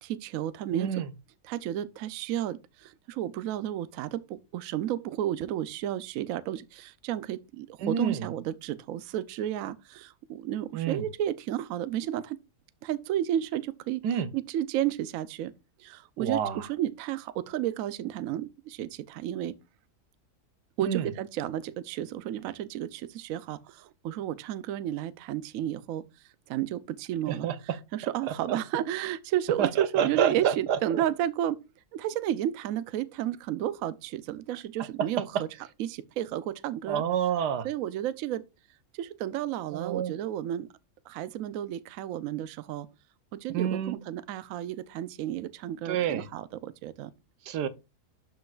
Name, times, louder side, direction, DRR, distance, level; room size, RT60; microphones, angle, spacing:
voice 1, 0.0-0.9 1.5-12.4 12.8-14.1 14.3-15.5 15.8-19.6 20.8-26.0 26.5-27.5 27.9-31.6 31.9-35.3 35.8-37.0 37.6-38.4 38.9-40.7 41.1-42.9 43.3-47.1, right 11 dB, 65° right, 0.9 m, -32 dB
voice 2, 0.7-1.1 7.8-8.3 10.7-11.1 14.0-14.3 16.2-16.7 20.8-21.1 27.3-27.6 29.6-31.0 35.0-35.1 36.9-37.7 39.7-40.1 43.5-44.0 45.8-46.3 47.4-47.7, right 8 dB, 85° right, 1.4 m, -28 dB
11.5 x 5.2 x 2.4 m
omnidirectional pair, 1.7 m